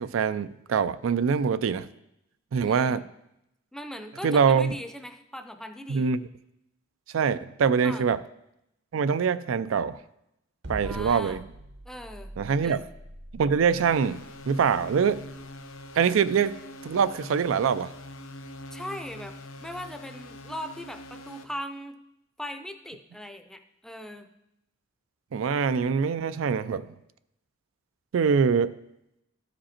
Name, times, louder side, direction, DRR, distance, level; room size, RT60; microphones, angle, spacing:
voice 1, 0.0-1.9 2.5-3.0 4.2-4.7 5.9-6.2 7.1-8.2 8.9-10.0 10.7-11.4 12.4-12.8 13.3-15.2 15.9-16.6 16.8-17.9 25.3-26.9 28.1-28.7, right 6 dB, 85° right, 14 dB, 0.4 m, -24 dB
voice 2, 2.6-3.1 3.7-6.1 7.8-8.1 10.8-11.4 11.9-12.3 12.6-12.9 18.7-19.3 19.6-22.0 22.4-24.3, left 1 dB, 5° left, 7 dB, 0.5 m, -39 dB
sound 1, 10.6-16.8, right 1 dB, 60° right, 0.9 m, -43 dB
sound 2, 13.8-21.4, left 1 dB, 80° left, 0.7 m, -44 dB
13.0 x 5.1 x 4.3 m, 0.84 s
head